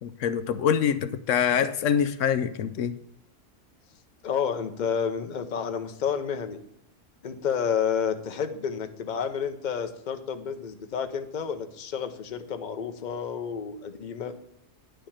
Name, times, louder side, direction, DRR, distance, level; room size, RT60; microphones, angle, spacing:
voice 1, 0.0-3.0, left 8 dB, 80° left, 11 dB, 0.9 m, -25 dB
voice 2, 4.2-6.6 7.2-14.3, left 7 dB, 45° left, 7 dB, 0.9 m, -30 dB
10.0 x 5.1 x 7.2 m, 0.74 s
omnidirectional pair, 1.3 m